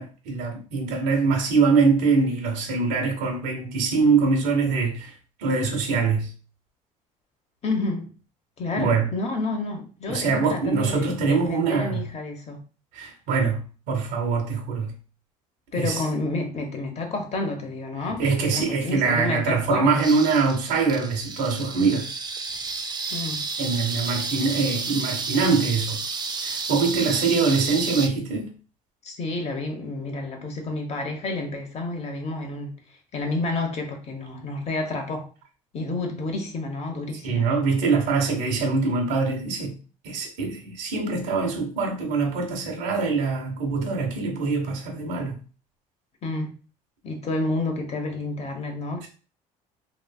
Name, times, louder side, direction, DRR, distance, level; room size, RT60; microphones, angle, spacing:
voice 1, 0.0-5.1 5.4-6.3 8.8-9.1 10.1-12.0 12.9-14.9 15.7-16.0 18.2-22.1 23.6-26.0 26.4-28.5 37.2-39.7 40.0-45.4, right 4 dB, 80° right, 0.9 m, -23 dB
voice 2, 7.6-8.1 8.6-12.6 15.7-20.1 23.1-23.5 29.0-32.8 33.1-35.3 35.7-37.5 46.2-46.6 47.0-49.1, left 2 dB, 40° left, 1.0 m, -30 dB
sound 1, 20.0-28.1, right 4 dB, 25° right, 0.5 m, -31 dB
3.1 x 2.6 x 2.3 m
supercardioid pair, 80°, 16 cm